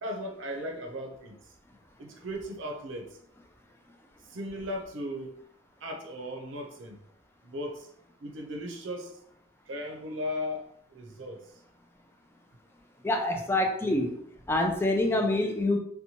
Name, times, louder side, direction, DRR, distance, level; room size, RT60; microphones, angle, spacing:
voice 1, 0.0-1.5 2.0-3.2 4.3-5.4 5.8-7.0 7.4-7.9 8.2-9.2 9.7-11.5, equal, 85° right, 2 dB, 0.5 m, -37 dB
voice 2, 13.0-14.2 14.5-15.8, left 1 dB, 15° left, 2 dB, 0.3 m, -26 dB
2.7 x 2.1 x 2.8 m, 0.67 s
head